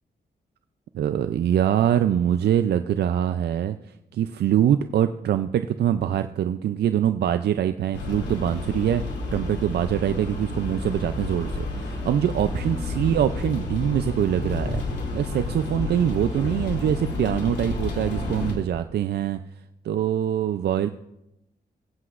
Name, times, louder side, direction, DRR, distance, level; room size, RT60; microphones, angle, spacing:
voice 1, 0.9-3.8 4.1-19.4 19.8-20.9, right 10 dB, 75° right, 10 dB, 0.4 m, -24 dB
sound 1, 7.9-18.5, left 2 dB, 90° left, 2.6 m, -30 dB
23.0 x 7.9 x 2.5 m, 0.87 s
cardioid pair, 90°, 17 cm